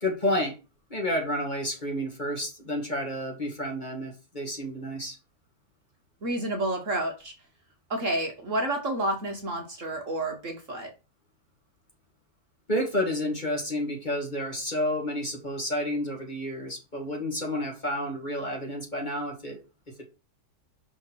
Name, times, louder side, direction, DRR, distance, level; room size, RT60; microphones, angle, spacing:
voice 1, 0.0-0.6 0.9-5.2 12.7-19.6 20.0-20.1, left 1 dB, 25° left, 2.1 m, -30 dB
voice 2, 6.2-7.3 7.9-10.9, right 1 dB, 50° right, 1.5 m, -30 dB
5.7 x 4.4 x 6.1 m
omnidirectional pair, 1.9 m